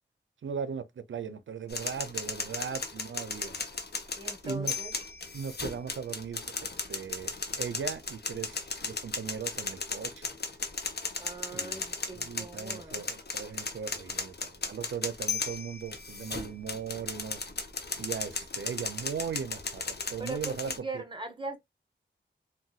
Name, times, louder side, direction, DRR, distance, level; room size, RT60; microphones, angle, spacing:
voice 1, 0.4-3.6 4.4-4.7 5.3-10.3 11.5-17.4 18.0-21.0, right 6 dB, 85° right, 0.5 m, -38 dB
sound 1, 1.7-20.8, left 4 dB, 60° left, 0.8 m, -36 dB
voice 2, 4.2-4.9 11.2-13.0 20.2-21.6, right 2 dB, 25° right, 1.0 m, -40 dB
3.9 x 2.2 x 2.3 m
wide cardioid pair, 70°, 19 cm